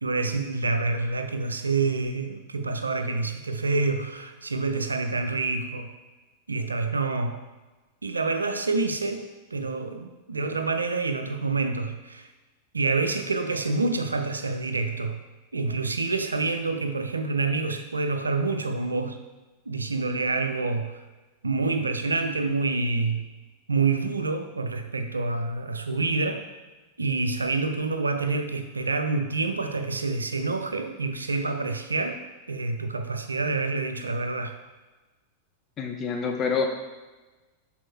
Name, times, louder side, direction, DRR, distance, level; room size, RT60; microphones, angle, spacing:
voice 1, 0.0-5.9 6.5-7.4 8.0-9.3 9.5-12.3 12.7-15.2 15.5-19.2 19.7-21.0 21.4-23.2 23.7-26.4 27.0-32.2 32.5-34.6, right 3 dB, 80° right, 7 dB, 0.5 m, -27 dB
voice 2, 35.8-36.7, left 5 dB, 30° left, 2 dB, 0.9 m, -26 dB
6.2 x 3.6 x 4.4 m, 1.2 s
figure-of-eight pair, 90°, 0 cm